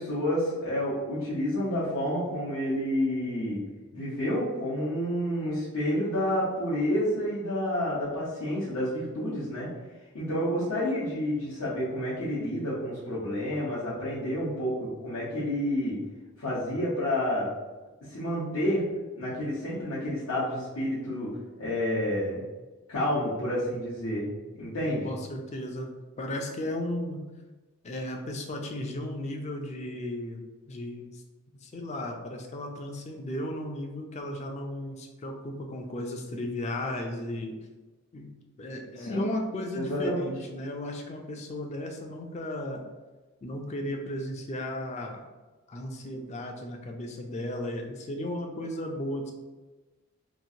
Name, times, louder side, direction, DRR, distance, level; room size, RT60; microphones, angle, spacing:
voice 1, 0.0-3.6 3.9-9.7 10.1-16.0 16.4-17.5 18.1-18.8 19.1-22.4 22.9-24.3 24.5-25.1 39.0-39.2 39.7-40.2, equal, 85° left, -9 dB, 0.9 m, -29 dB
voice 2, 25.0-25.9 26.2-27.2 27.8-31.2 31.6-37.5 38.1-38.3 38.6-42.8 43.4-45.2 45.7-49.3, left 1 dB, 30° left, 3 dB, 0.3 m, -35 dB
2.9 x 2.5 x 2.7 m, 1.2 s
head